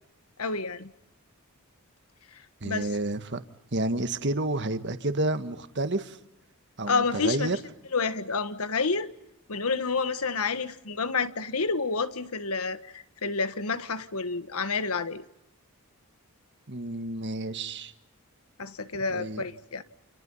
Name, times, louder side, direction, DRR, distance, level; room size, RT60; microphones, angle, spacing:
voice 1, 0.4-0.9 2.6-2.9 6.9-7.6 7.9-9.1 9.5-15.2 18.6-19.8, left 4 dB, 75° left, 1.5 m, -29 dB
voice 2, 2.6-3.4 3.7-6.2 6.8-7.6 16.7-17.9 19.1-19.4, right 2 dB, 50° right, 1.6 m, -30 dB
29.5 x 28.5 x 5.6 m
head